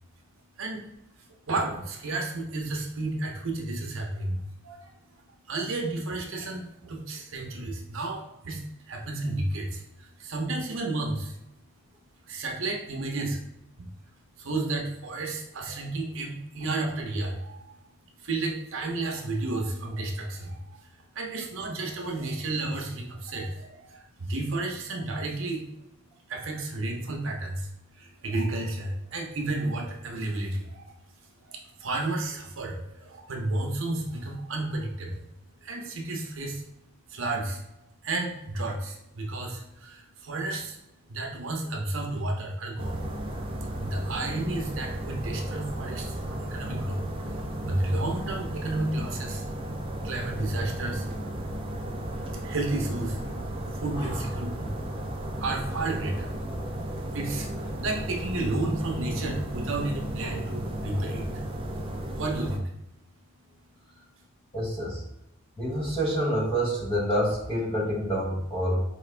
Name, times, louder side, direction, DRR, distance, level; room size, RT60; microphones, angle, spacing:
voice 1, 0.6-0.9 1.2-11.4 12.3-13.4 13.8-13.9 14.4-17.7 18.2-20.9 21.1-25.7 26.3-31.0 31.4-35.3 35.6-36.6 37.1-37.6 38.0-40.8 41.1-43.2 43.8-49.5 50.0-51.3 51.9-53.2 53.7-54.8 55.4-56.4 57.1-63.0 63.4-63.5 63.8-64.1, right 2 dB, 65° right, 1 dB, 0.7 m, -32 dB
sound 1, 42.8-62.6, right 1 dB, 25° right, 0.4 m, -34 dB
voice 2, 53.9-54.3 64.5-65.0 65.6-68.8, equal, 25° left, -3 dB, 0.9 m, -27 dB
4.7 x 2.5 x 3.3 m, 0.87 s
head